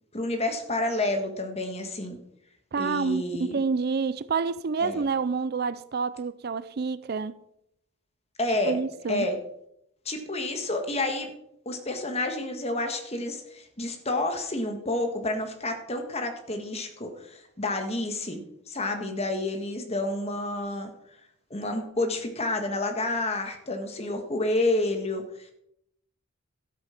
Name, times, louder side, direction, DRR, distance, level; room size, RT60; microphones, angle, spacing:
voice 1, 0.1-2.2 2.8-3.6 4.8-5.0 8.4-8.8 9.1-9.4 10.1-11.3 11.7-18.4 18.7-20.9 21.5-25.5, left 2 dB, 30° left, 1.6 m, -29 dB
voice 2, 2.7-7.4 8.7-9.3, right 5 dB, 45° right, 0.4 m, -28 dB
12.0 x 8.5 x 5.9 m
head